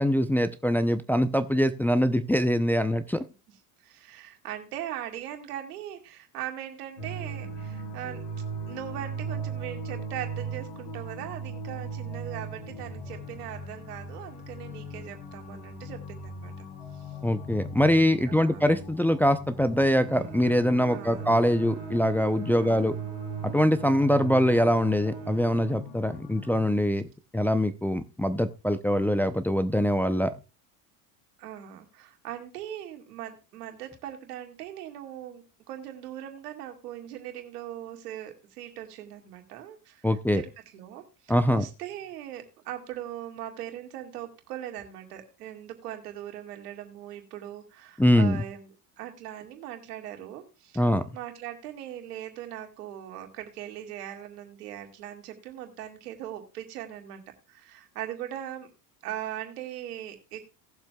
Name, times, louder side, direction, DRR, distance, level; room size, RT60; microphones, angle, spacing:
voice 1, 0.0-3.2 17.2-23.0 23.4-27.1 27.3-30.3 40.0-40.4 41.3-41.6 48.0-48.4 50.8-51.0, equal, 5° left, 9 dB, 0.5 m, -23 dB
voice 2, 3.8-8.2 8.7-16.7 16.9-17.1 18.3-18.7 20.9-21.4 22.6-23.1 31.4-50.9 51.1-57.2 57.5-58.7 59.0-60.5, right 11 dB, 85° right, 4 dB, 2.2 m, -40 dB
sound 1, 7.0-26.7, right 3 dB, 60° left, 4.6 m, -38 dB
Bowed string instrument, 19.8-26.5, right 11 dB, 55° right, 1.9 m, -44 dB
18.5 x 7.2 x 2.3 m, 0.31 s
hypercardioid pair, 90°, 45 cm